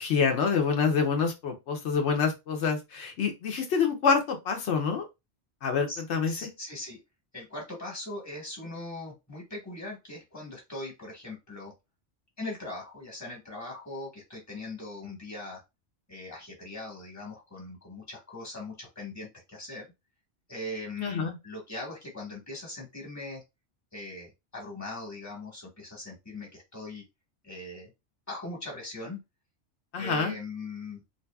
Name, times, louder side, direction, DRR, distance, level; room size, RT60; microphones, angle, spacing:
voice 1, 0.0-5.0 5.6-6.3 21.0-21.4 29.9-30.3, left 5 dB, 80° left, 4 dB, 0.9 m, -26 dB
voice 2, 5.9-7.0 7.3-11.7 12.4-15.6 16.1-19.8 20.5-23.4 23.9-27.0 27.4-27.9 28.3-29.2 30.0-31.0, left 2 dB, 15° left, -1 dB, 1.0 m, -40 dB
2.6 x 2.6 x 2.2 m, 0.23 s
omnidirectional pair, 1.2 m